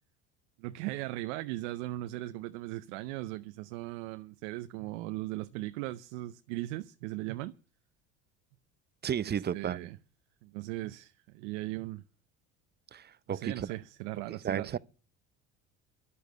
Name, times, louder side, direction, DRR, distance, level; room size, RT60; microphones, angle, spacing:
voice 1, 0.6-7.5 9.3-10.0 10.4-12.0 13.3-14.8, right 17 dB, 80° right, 0.7 m, -38 dB
voice 2, 9.0-9.9 12.9-13.7 14.4-14.8, right 9 dB, 30° right, 0.6 m, -33 dB
11.0 x 8.3 x 9.5 m
supercardioid pair, 80°, 34 cm